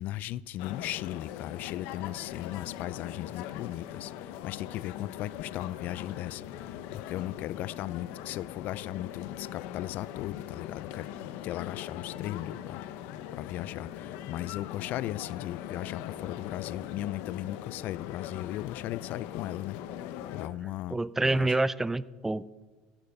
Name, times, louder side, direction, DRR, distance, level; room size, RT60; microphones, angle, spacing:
voice 1, 0.0-12.8 13.3-19.8 20.0-21.0 21.3-21.6, left 14 dB, 55° left, 0.3 m, -37 dB
sound 1, 0.6-20.5, left 11 dB, 70° left, 0.9 m, -41 dB
voice 2, 20.6-22.6, right 2 dB, 10° right, 0.5 m, -28 dB
15.5 x 11.5 x 5.4 m
supercardioid pair, 125°, 4 cm